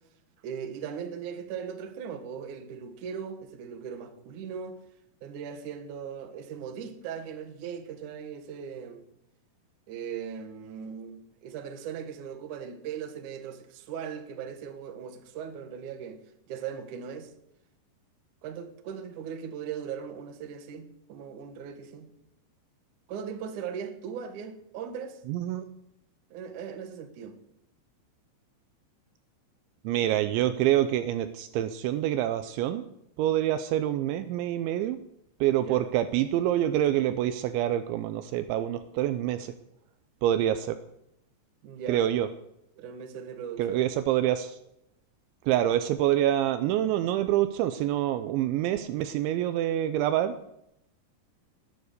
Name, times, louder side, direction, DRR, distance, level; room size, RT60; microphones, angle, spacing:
voice 1, 0.4-4.8 5.2-9.0 9.9-16.2 16.5-17.3 18.4-22.1 23.1-25.2 26.3-27.3 35.6-35.9 41.6-42.0 42.8-43.8, right 7 dB, 60° right, 2.2 m, -39 dB
voice 2, 25.3-25.6 29.8-32.8 33.2-35.0 35.4-39.5 40.2-40.8 41.9-42.3 43.6-44.6 45.5-50.3, right 12 dB, 80° right, 2.9 m, -26 dB
19.5 x 9.6 x 6.7 m
omnidirectional pair, 5.5 m